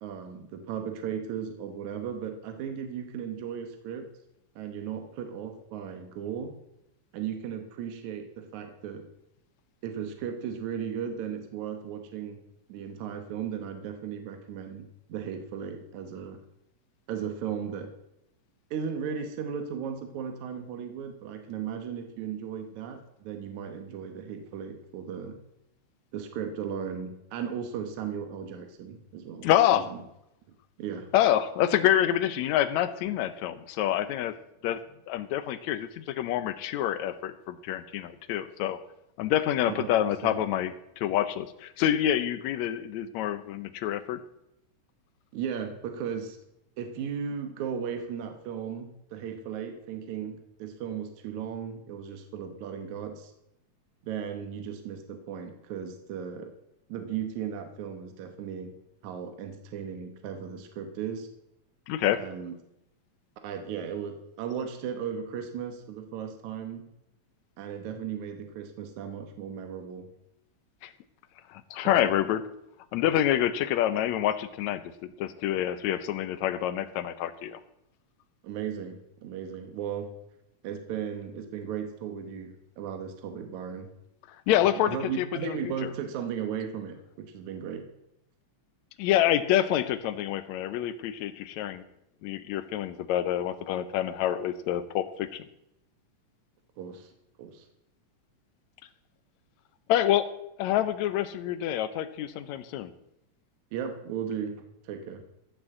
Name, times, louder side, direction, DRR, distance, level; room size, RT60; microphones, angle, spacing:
voice 1, 0.0-4.1 4.6-6.6 7.1-9.1 9.8-12.4 12.7-16.4 17.1-17.9 18.7-25.4 26.1-30.0 30.8-31.1 39.7-40.4 45.3-46.4 46.8-53.3 54.1-56.5 56.9-58.8 59.0-61.3 62.2-62.5 63.4-66.9 67.6-70.1 71.8-72.1 78.4-80.1 80.6-83.9 84.8-87.9 96.8-97.1 97.4-97.7 103.7-105.2, right 8 dB, 75° right, 6 dB, 2.4 m, -36 dB
voice 2, 29.4-29.9 31.1-34.3 34.6-34.8 35.1-38.8 39.2-44.2 61.9-62.2 70.8-70.9 71.5-72.4 72.9-77.6 84.5-85.9 89.0-91.8 92.2-95.4 99.9-100.3 100.6-102.9, left 11 dB, 75° left, 13 dB, 2.0 m, -27 dB
14.0 x 6.2 x 7.8 m, 0.83 s
omnidirectional pair, 3.4 m